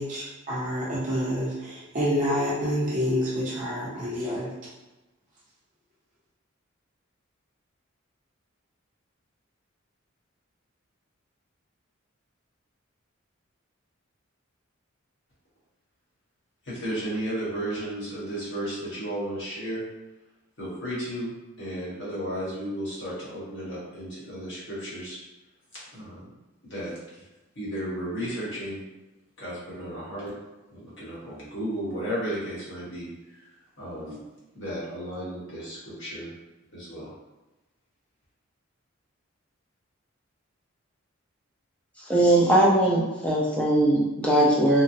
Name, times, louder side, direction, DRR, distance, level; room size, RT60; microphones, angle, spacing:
voice 1, 0.0-4.5, equal, 40° right, -8 dB, 0.6 m, -28 dB
voice 2, 16.6-19.8 20.6-25.2 25.9-26.2 26.6-26.9 27.5-28.8 29.4-30.3 30.7-33.1 33.8-34.2 34.5-36.3 36.7-37.1, right 1 dB, 60° left, -8 dB, 1.2 m, -33 dB
voice 3, 42.1-44.8, right 1 dB, 5° left, -5 dB, 0.5 m, -20 dB
3.0 x 2.2 x 2.6 m, 1.0 s
head